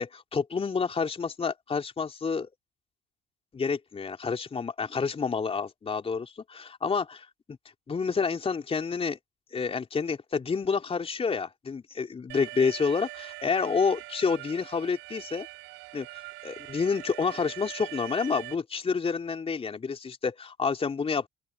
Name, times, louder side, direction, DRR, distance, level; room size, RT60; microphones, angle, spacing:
voice 1, 0.0-2.5 3.5-7.6 7.9-9.2 9.5-15.5 15.9-16.1 16.4-21.3, left 5 dB, 30° left, 3.3 m, -29 dB
Alarm, 12.3-18.5, right 25 dB, 70° right, 5.3 m, -42 dB
open air
hypercardioid pair, 60°, 20 cm